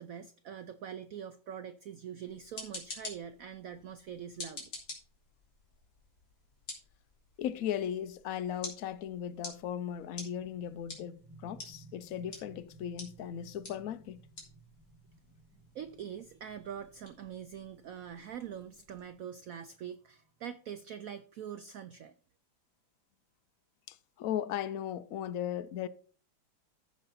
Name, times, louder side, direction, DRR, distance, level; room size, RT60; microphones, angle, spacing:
voice 1, 0.0-4.7 15.7-22.1, right 8 dB, 90° right, 0.7 m, -44 dB
sound 1, 2.3-19.1, left 2 dB, 50° left, 3.6 m, -50 dB
voice 2, 7.4-14.2 23.9-25.9, left 10 dB, 70° left, 0.8 m, -37 dB
sound 2, 10.5-20.9, right 3 dB, ahead, 2.0 m, -59 dB
14.5 x 5.3 x 4.1 m
omnidirectional pair, 2.1 m